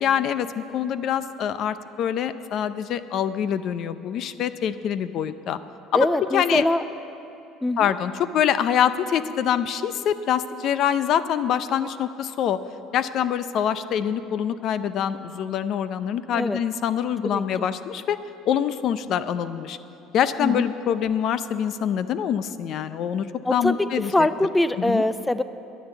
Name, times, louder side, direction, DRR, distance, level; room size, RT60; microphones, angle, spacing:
voice 1, 0.0-5.6 5.9-6.1 6.3-6.6 7.8-12.6 12.9-18.2 18.5-19.8 20.1-24.1 24.8-25.0, left 9 dB, 60° left, 13 dB, 0.6 m, -25 dB
voice 2, 5.9-6.8 7.6-7.9 16.3-16.6 17.2-17.7 20.4-20.7 23.4-25.4, left 1 dB, 10° left, 14 dB, 0.4 m, -23 dB
11.0 x 10.0 x 8.3 m, 2.9 s
supercardioid pair, 95°, 0 cm